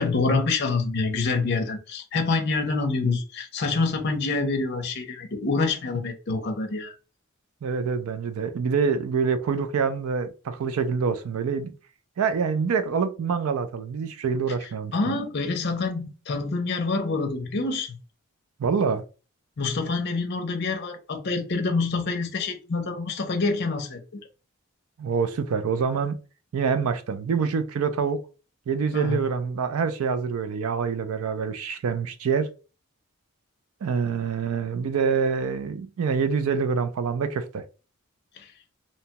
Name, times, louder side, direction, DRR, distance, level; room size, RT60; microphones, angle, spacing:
voice 1, 0.0-6.9 14.6-18.0 19.6-24.2 28.9-29.2 38.4-38.5, left 3 dB, 50° left, 0.5 m, -26 dB
voice 2, 7.6-11.7 12.2-14.9 18.6-19.0 25.0-26.2 26.5-28.2 28.7-32.5 33.8-37.6, right 5 dB, 80° right, 0.4 m, -26 dB
2.8 x 2.2 x 2.8 m
head